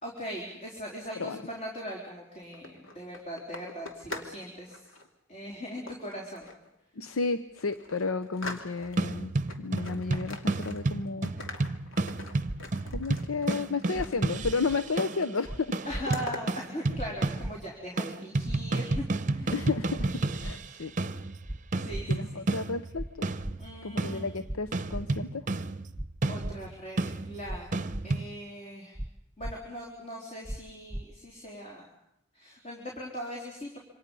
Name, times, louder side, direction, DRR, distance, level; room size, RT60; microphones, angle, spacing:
voice 1, 0.0-4.8 5.3-6.5 15.9-19.7 21.8-22.4 23.6-24.3 26.3-29.0 29.4-31.9 32.3-33.8, equal, 35° left, -2 dB, 4.0 m, -40 dB
sound 1, 2.4-4.4 4.7-5.1 5.9-6.7 7.1-7.2 7.6-9.1 9.5-11.0 11.2-14.4 14.7-15.3 15.6-16.4, left 2 dB, 70° left, 2.6 m, -42 dB
voice 2, 7.0-11.4 12.9-16.0 19.5-20.1 20.4-20.9 22.1-23.3 23.8-25.5, left 4 dB, 90° left, 11 dB, 0.8 m, -32 dB
sound 2, 8.8-15.3 15.7-17.7 18.0-28.2, right 2 dB, 40° right, 0.8 m, -32 dB
sound 3, 12.4-12.6 12.9-13.0 13.9-14.1 14.4-14.5 15.4-15.6 15.9-16.0 16.9-17.1 17.4-17.5 18.4-18.6 18.9-19.0 19.9-20.1 20.4-20.5 21.4-21.6 21.9-22.0 22.9-23.1 23.4-23.5 24.4-24.6 24.9-25.0 25.9-26.1 26.4-26.5 27.4-27.6 27.9-28.0 28.9-29.1 29.4-29.5 30.4-30.6 30.9-31.0, right 1 dB, 5° right, 0.9 m, -36 dB
27.5 x 25.5 x 5.5 m, 0.81 s
head